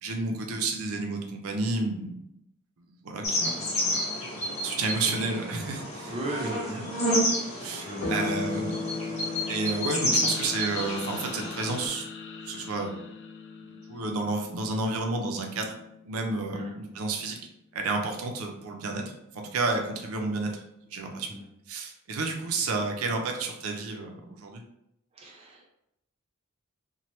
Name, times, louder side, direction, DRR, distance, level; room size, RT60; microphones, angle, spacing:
voice 1, 0.0-2.1 3.0-4.3 4.6-6.1 6.7-6.9 7.6-8.8 9.5-12.1 12.4-12.9 13.6-15.7 16.0-17.4 17.7-19.0 19.3-21.3 21.7-24.6, right 3 dB, 80° right, 3 dB, 0.5 m, -31 dB
sound 1, 3.2-11.9, left 1 dB, 30° left, 0.8 m, -30 dB
voice 2, 6.1-6.9 7.2-8.7 10.2-10.3 16.5-16.7 21.3-21.4 25.1-25.7, right 1 dB, 25° right, -1 dB, 0.5 m, -38 dB
sound 2, 8.0-16.9, left 3 dB, 85° left, 0.8 m, -38 dB
sound 3, 10.2-14.0, left 6 dB, 55° left, 0.3 m, -44 dB
3.0 x 2.1 x 2.9 m, 0.81 s
head